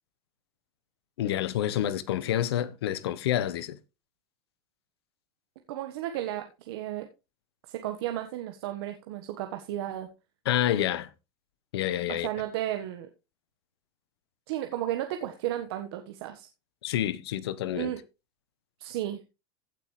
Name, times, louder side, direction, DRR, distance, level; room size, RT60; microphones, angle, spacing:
voice 1, 1.2-3.8 10.4-11.1 11.7-12.3 16.8-17.9, left 11 dB, 85° left, 1.0 m, -28 dB
voice 2, 5.7-7.1 7.7-10.1 12.1-13.1 14.5-16.5 17.7-18.0 18.8-19.2, right 13 dB, 75° right, 1.4 m, -33 dB
16.0 x 6.0 x 3.2 m
supercardioid pair, 100°, 13 cm